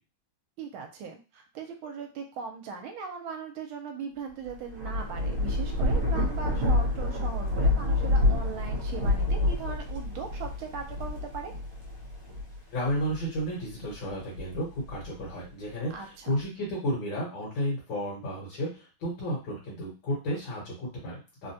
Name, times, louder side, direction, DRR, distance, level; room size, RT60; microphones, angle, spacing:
voice 1, 0.6-11.5 15.9-16.3, right 6 dB, 80° right, 4 dB, 1.4 m, -39 dB
Thunder / Rain, 4.5-13.4 13.9-15.3, left 2 dB, 55° right, 0.9 m, -28 dB
voice 2, 12.7-21.5, equal, 65° left, -5 dB, 1.8 m, -32 dB
3.7 x 2.2 x 2.7 m, 0.32 s
omnidirectional pair, 2.3 m